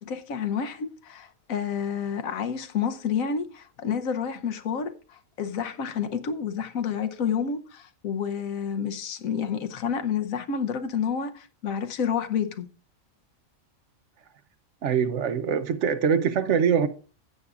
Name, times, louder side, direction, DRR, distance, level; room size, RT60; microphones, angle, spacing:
voice 1, 0.0-12.7, left 7 dB, 75° left, 1.2 m, -29 dB
voice 2, 14.8-16.9, right 7 dB, 65° right, 1.0 m, -23 dB
15.0 x 8.3 x 2.4 m
omnidirectional pair, 1.4 m